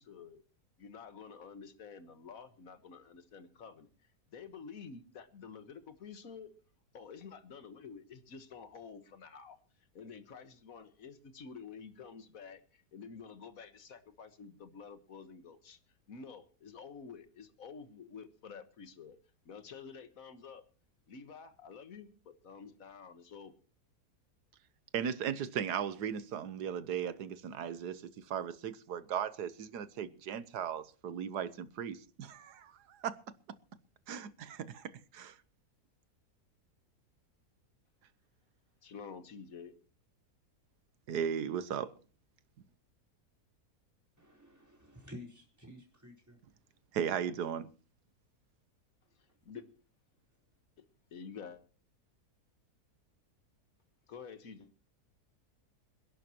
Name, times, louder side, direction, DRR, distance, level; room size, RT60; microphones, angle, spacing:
voice 1, 0.0-0.4 0.8-3.9 4.3-6.5 6.9-9.6 9.9-15.8 16.1-19.2 19.5-20.6 21.1-23.5 38.8-39.7 49.5-49.7 50.8-50.9 51.1-51.6 54.1-54.7, left 6 dB, 60° left, 1.8 m, -49 dB
voice 2, 24.9-33.2 34.1-35.4 41.1-41.9 46.9-47.7, right 8 dB, 85° right, 1.5 m, -37 dB
voice 3, 44.2-46.4, left 1 dB, 10° right, 4.4 m, -51 dB
27.5 x 11.5 x 3.0 m
omnidirectional pair, 1.7 m